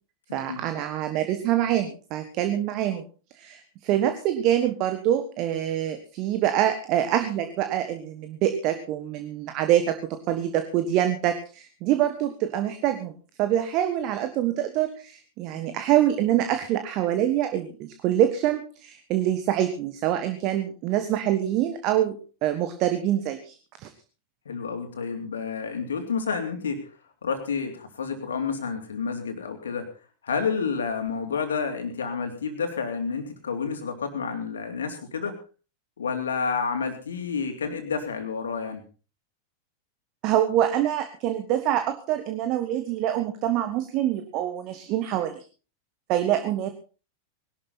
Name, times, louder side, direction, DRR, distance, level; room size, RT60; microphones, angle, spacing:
voice 1, 0.3-3.0 3.3-13.1 13.4-22.2 22.4-23.9 40.2-45.4 46.1-46.7, right 11 dB, 40° right, 9 dB, 1.4 m, -25 dB
voice 2, 24.4-26.9 27.2-29.9 30.2-35.4 36.0-38.8, left 5 dB, 70° left, 6 dB, 3.2 m, -30 dB
20.5 x 12.5 x 4.2 m, 0.36 s
figure-of-eight pair, 90°, 0 cm